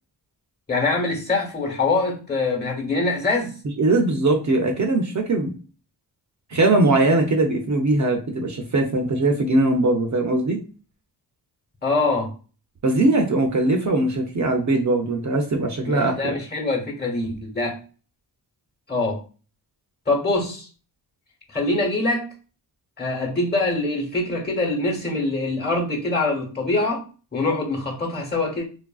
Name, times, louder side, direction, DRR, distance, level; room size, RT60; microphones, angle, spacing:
voice 1, 0.7-3.6 11.8-12.3 15.8-17.8 18.9-19.2 20.1-20.7 21.5-22.3 23.0-27.0 27.3-28.7, left 2 dB, 25° left, 1.1 m, -24 dB
voice 2, 3.8-5.5 6.5-10.6 12.8-16.3, right 2 dB, 40° right, 0.5 m, -20 dB
3.1 x 2.4 x 2.3 m
wide cardioid pair, 100°, 43 cm